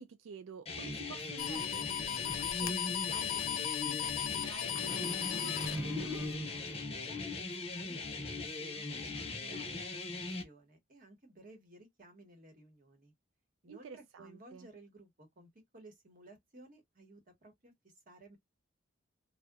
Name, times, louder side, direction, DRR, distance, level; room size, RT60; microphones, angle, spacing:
voice 1, 0.0-5.5 13.7-14.7, right 6 dB, 80° right, 0.4 m, -51 dB
sound 1, 0.7-10.4, left 3 dB, 30° left, 0.8 m, -40 dB
sound 2, 1.4-6.3, left 10 dB, 90° left, 0.4 m, -37 dB
sound 3, 4.8-6.9, equal, 10° right, 0.4 m, -40 dB
voice 2, 5.9-10.0 10.4-13.1 13.6-18.4, right 2 dB, 45° right, 1.0 m, -57 dB
2.7 x 2.1 x 2.2 m
head